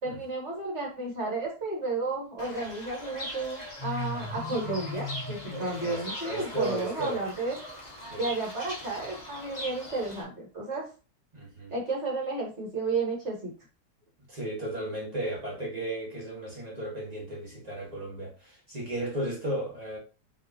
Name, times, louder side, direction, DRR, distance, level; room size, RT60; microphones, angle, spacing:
voice 1, 0.0-7.6 8.2-10.9 11.7-13.5, right 3 dB, 40° right, 1.9 m, -32 dB
Fowl / Bird, 2.4-10.2, left 1 dB, 30° left, 1.1 m, -39 dB
voice 2, 5.5-7.3 8.1-8.3 11.3-11.7 14.3-20.0, right 1 dB, 20° right, 1.8 m, -35 dB
5.0 x 3.6 x 2.9 m
omnidirectional pair, 1.9 m